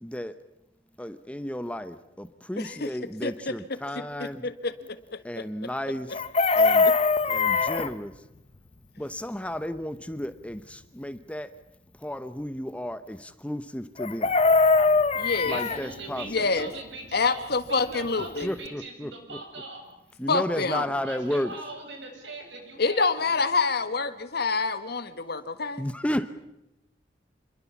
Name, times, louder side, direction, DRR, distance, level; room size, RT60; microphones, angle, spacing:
voice 1, 0.0-0.3 1.0-4.5 5.2-6.2 6.6-6.9 7.3-8.1 9.0-11.5 12.0-14.3 15.5-16.3 18.4-19.1 20.2-21.5 25.8-26.3, equal, 5° left, 12 dB, 0.8 m, -33 dB
voice 2, 2.6-2.9 3.2-3.5 4.4-5.4 6.8-6.9 15.1-15.6 16.2-16.7 17.1-18.5 20.3-20.8 22.8-25.8, left 4 dB, 60° left, 12 dB, 1.5 m, -27 dB
Chicken rooster, 6.1-7.9 14.0-15.8 18.0-18.1 18.4-18.7, left 4 dB, 35° left, 0.9 m, -21 dB
voice 3, 15.5-19.8 21.0-23.4, right 2 dB, 75° right, 3 dB, 7.7 m, -41 dB
28.0 x 22.5 x 7.2 m, 0.89 s
head